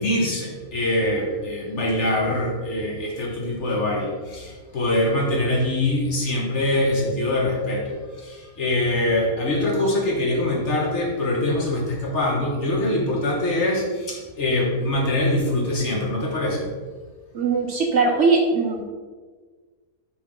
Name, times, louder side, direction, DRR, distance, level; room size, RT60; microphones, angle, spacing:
voice 1, 0.0-8.0 8.2-16.7, left 1 dB, 50° left, -2 dB, 1.4 m, -23 dB
voice 2, 17.3-18.8, right 4 dB, 60° right, 1 dB, 0.9 m, -20 dB
6.2 x 4.5 x 3.6 m, 1.4 s
omnidirectional pair, 1.6 m